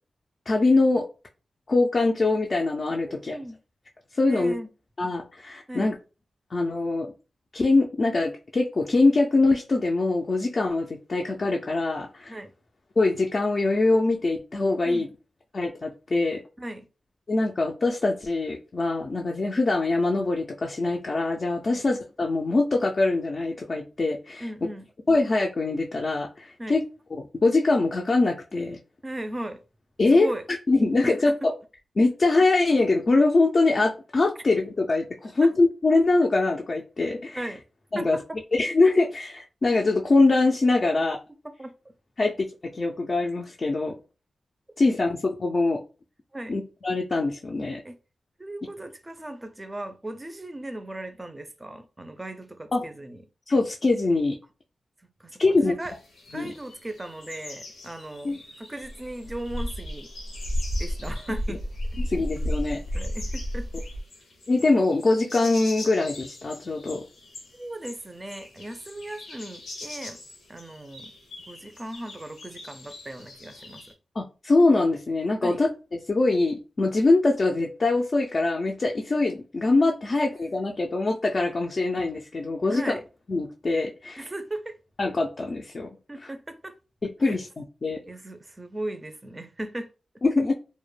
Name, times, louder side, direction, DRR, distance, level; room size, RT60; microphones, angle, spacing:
voice 1, 0.5-1.0 1.7-3.4 4.1-4.5 5.0-5.9 6.5-7.1 7.5-12.4 13.0-15.1 15.5-16.4 17.3-24.4 25.1-26.8 27.1-28.8 30.0-30.3 30.7-31.3 32.0-37.4 37.9-38.2 38.5-41.2 42.2-42.5 42.7-43.9 44.8-45.8 46.5-47.8 52.7-52.8 53.5-54.4 55.4-55.7 56.3-56.5 58.2-58.4 62.0-62.8 64.5-67.0 74.2-75.7 76.1-83.0 83.3-84.3 85.0-85.9 86.2-86.3 87.2-88.0 90.2-90.5, left 3 dB, 50° left, 0.3 m, -23 dB
voice 2, 3.1-3.6 4.3-4.7 5.7-5.9 12.3-12.5 14.8-15.1 16.6-16.9 21.7-21.8 24.4-24.9 26.6-26.8 29.0-29.6 30.1-30.4 31.0-31.4 35.4-35.5 37.3-37.6 37.9-38.4 41.4-41.9 46.3-46.6 47.8-48.0 48.4-53.2 55.0-55.9 56.3-60.1 60.8-61.6 62.9-63.7 67.5-70.2 70.5-71.1 71.5-73.8 75.4-75.6 82.7-83.0 84.2-84.8 86.1-86.8 87.2-87.4 88.1-89.9, right 1 dB, 25° right, 0.4 m, -37 dB
sound 1, 55.8-73.9, left 2 dB, 90° left, 0.6 m, -44 dB
sound 2, 58.8-64.0, equal, 80° right, 0.5 m, -31 dB
2.1 x 2.0 x 3.1 m
cardioid pair, 60°, 0 cm